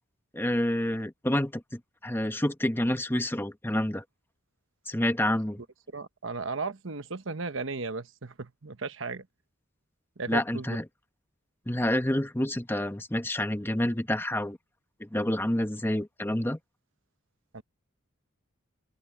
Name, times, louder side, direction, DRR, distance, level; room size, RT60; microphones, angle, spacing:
voice 1, 0.3-4.0 4.9-5.6 10.3-10.8 11.7-14.6 15.0-16.6, left 1 dB, 10° left, 1.3 m, -28 dB
voice 2, 5.9-9.2 10.2-10.8 17.5-17.6, right 4 dB, 70° right, 1.1 m, -35 dB
open air
head